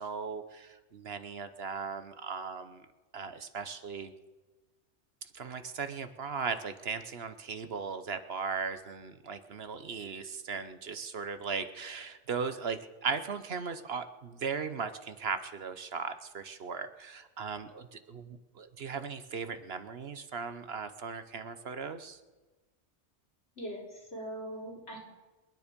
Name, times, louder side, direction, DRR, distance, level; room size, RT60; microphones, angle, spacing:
voice 1, 0.0-2.9 3.1-4.1 5.2-22.2, right 5 dB, 60° right, 10 dB, 1.1 m, -38 dB
voice 2, 23.6-25.0, equal, 70° left, -2 dB, 4.5 m, -41 dB
28.0 x 9.9 x 5.2 m, 1.2 s
omnidirectional pair, 1.2 m